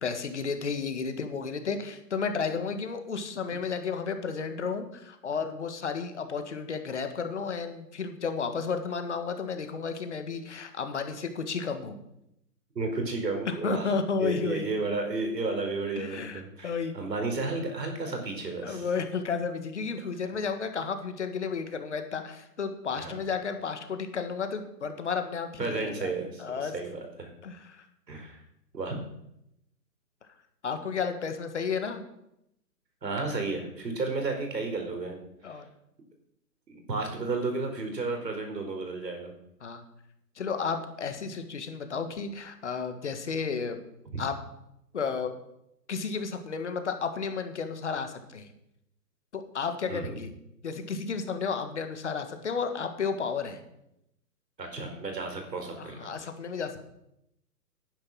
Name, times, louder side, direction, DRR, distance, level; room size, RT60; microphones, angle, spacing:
voice 1, 0.0-12.0 13.5-14.7 16.0-16.9 18.6-26.1 26.4-26.7 27.4-27.8 30.6-32.0 35.4-35.7 39.6-39.8 40.4-43.8 44.2-44.3 44.9-45.3 45.9-48.5 49.3-50.3 50.6-53.6 55.8-56.9, left 5 dB, 45° left, 7 dB, 1.7 m, -32 dB
voice 2, 12.7-13.9 14.2-18.9 22.9-23.1 25.6-27.3 28.1-28.4 28.7-29.0 33.0-35.2 35.5-35.6 36.7-39.3 44.1-44.2 49.9-50.2 54.6-56.1, right 3 dB, 80° right, 4 dB, 4.7 m, -32 dB
11.5 x 9.4 x 6.3 m, 0.82 s
hypercardioid pair, 175°, 49 cm